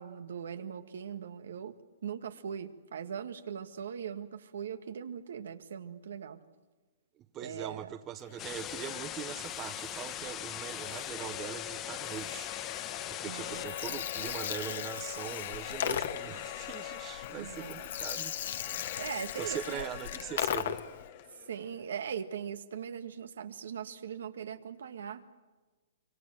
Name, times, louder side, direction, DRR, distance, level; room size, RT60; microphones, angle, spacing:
voice 1, 0.0-1.7 2.0-6.4 7.4-8.0 13.3-14.0 17.4-17.9 19.0-19.9 21.5-25.2, right 8 dB, 75° right, 9 dB, 1.8 m, -40 dB
voice 2, 7.2-12.5 13.1-18.3 18.6-19.0 19.4-20.8, right 10 dB, 25° right, 12 dB, 1.0 m, -42 dB
sound 1, 8.2-22.0, left 14 dB, 40° left, 1.3 m, -43 dB
sound 2, 8.4-13.6, left 11 dB, 20° left, 1.0 m, -41 dB
Gurgling, 13.5-21.0, left 9 dB, 65° left, 1.7 m, -37 dB
26.5 x 23.0 x 7.7 m, 1.3 s
hypercardioid pair, 145°, 0 cm